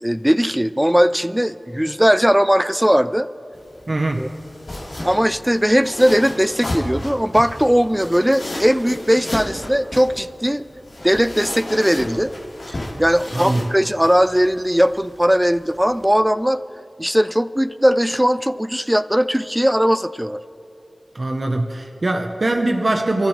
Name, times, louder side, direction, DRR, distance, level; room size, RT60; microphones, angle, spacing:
voice 1, 0.0-3.3 4.2-4.3 5.0-10.6 11.0-12.3 12.7-16.6 17.0-20.4, equal, 5° right, 14 dB, 0.4 m, -18 dB
sound 1, 3.5-16.2, left 1 dB, 75° left, 3.8 m, -33 dB
voice 2, 3.9-4.3 13.3-13.7 21.1-23.3, right 2 dB, 55° right, 3 dB, 1.0 m, -22 dB
29.5 x 14.0 x 3.3 m, 2.5 s
wide cardioid pair, 70°, 0 cm